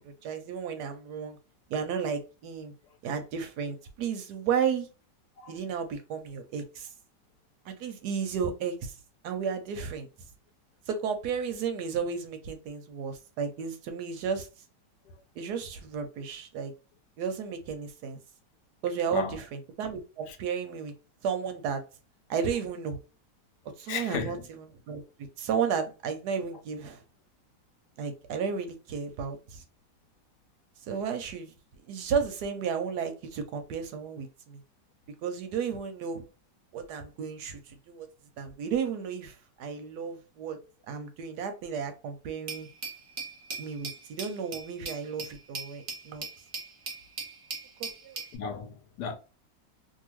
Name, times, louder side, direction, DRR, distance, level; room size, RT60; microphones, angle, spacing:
voice 1, 0.2-1.4 1.7-2.7 3.0-4.9 5.5-6.9 7.6-9.0 9.2-10.1 10.9-14.5 15.4-16.7 17.2-18.2 18.8-20.9 21.2-21.8 22.3-23.0 23.8-24.4 24.9-27.0 28.0-29.6 30.9-31.5 31.9-34.6 35.2-36.2 36.7-38.1 38.4-40.6 40.9-42.7 43.6-46.3 47.8-48.2, right 6 dB, 75° right, 1.1 m, -33 dB
voice 2, 23.9-24.4 48.3-49.2, left 6 dB, 75° left, 1.1 m, -35 dB
Glass, 42.5-48.4, right 4 dB, 45° right, 0.8 m, -40 dB
2.7 x 2.6 x 2.9 m
omnidirectional pair, 1.9 m